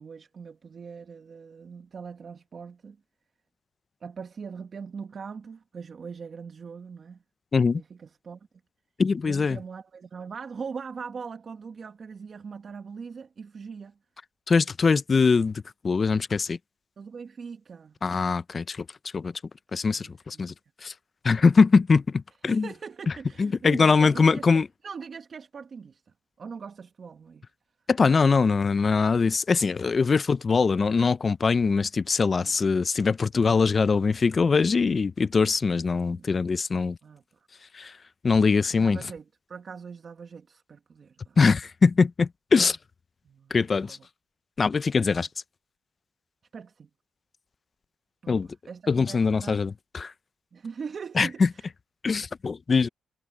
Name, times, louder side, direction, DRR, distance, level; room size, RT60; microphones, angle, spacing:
voice 1, 0.0-3.0 4.0-7.2 7.7-8.5 9.2-14.0 17.0-18.0 19.7-20.5 22.5-26.0 26.4-27.5 30.1-30.2 32.4-32.6 36.1-36.3 37.0-37.2 38.7-41.4 43.2-44.1 46.5-46.9 48.2-49.6 50.5-51.7, right 5 dB, 50° right, 1.7 m, -41 dB
voice 2, 9.0-9.6 14.5-16.6 18.0-18.8 19.1-19.3 19.7-20.5 20.8-20.9 21.2-22.7 23.4-24.7 27.9-37.0 37.7-37.9 38.2-39.0 41.4-42.8 43.5-44.0 44.6-45.3 48.3-48.5 48.9-50.1 51.2-51.5 52.0-52.9, left 4 dB, 40° left, 0.6 m, -22 dB
cardioid pair, 90°, 0 cm